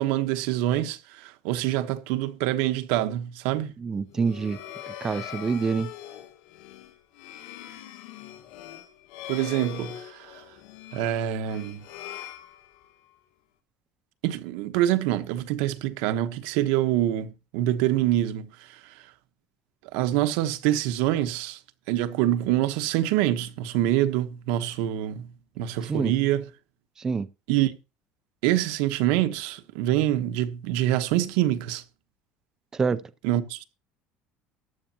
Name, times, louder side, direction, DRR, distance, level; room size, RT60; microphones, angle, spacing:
voice 1, 0.0-3.7 9.3-10.4 10.9-11.8 14.2-18.9 19.9-21.6 21.9-25.3 25.6-26.4 27.5-27.7 28.4-31.8 33.2-33.6, right 13 dB, 85° right, 1.2 m, -25 dB
voice 2, 3.8-4.6 4.9-5.9 25.9-26.1 27.0-27.3 32.7-33.0, right 5 dB, 15° right, 0.5 m, -26 dB
sound 1, 4.1-13.1, left 11 dB, 90° left, 1.5 m, -42 dB
14.5 x 10.5 x 2.9 m
cardioid pair, 160°, 3 cm